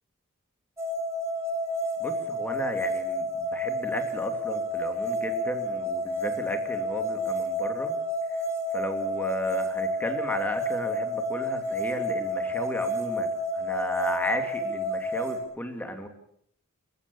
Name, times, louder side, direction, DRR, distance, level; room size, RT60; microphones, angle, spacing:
sound 1, 0.8-15.4, equal, 15° right, 4.4 m, -30 dB
voice 1, 2.0-8.0 8.3-8.4 8.7-16.1, equal, 10° left, 6 dB, 2.7 m, -35 dB
28.5 x 15.0 x 7.1 m, 0.67 s
head